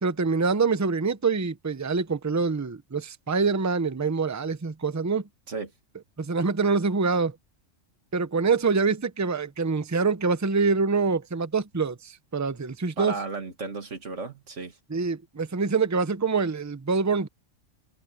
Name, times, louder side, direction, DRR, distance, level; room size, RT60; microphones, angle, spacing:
voice 1, 0.0-5.3 6.2-7.4 8.1-13.1 14.9-17.3, right 4 dB, 20° right, 0.6 m, -25 dB
voice 2, 13.0-14.8, right 4 dB, 70° right, 2.4 m, -34 dB
omnidirectional pair, 1.3 m